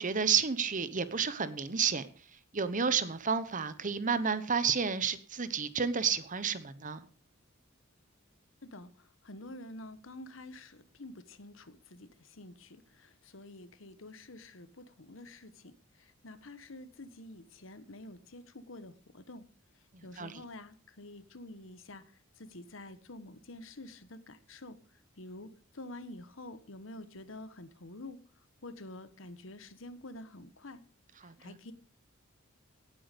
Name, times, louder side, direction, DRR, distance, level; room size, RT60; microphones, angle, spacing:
voice 1, 0.0-2.1 2.5-7.0 20.2-20.3 31.2-31.5, right 6 dB, 40° right, 13 dB, 1.0 m, -31 dB
voice 2, 8.6-19.5 20.0-28.2 28.6-30.8 31.2-31.7, left 2 dB, 70° left, 13 dB, 1.3 m, -48 dB
17.5 x 8.7 x 5.2 m, 0.40 s
head